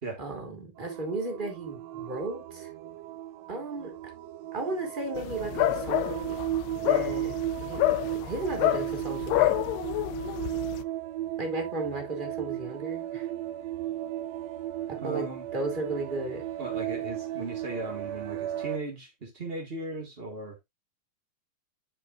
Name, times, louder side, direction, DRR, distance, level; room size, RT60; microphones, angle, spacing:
voice 1, 0.2-2.7 3.5-3.9 4.5-6.4 6.7-7.8 8.2-9.6 11.4-13.3 14.9-16.4, right 2 dB, 15° right, 2.2 m, -34 dB
sound 1, 0.8-18.8, right 13 dB, 85° right, 1.5 m, -35 dB
sound 2, 5.2-10.8, left 16 dB, 85° left, 2.3 m, -28 dB
voice 2, 15.0-15.4 16.6-20.6, right 2 dB, 35° right, 0.9 m, -37 dB
12.0 x 5.0 x 2.5 m
omnidirectional pair, 3.9 m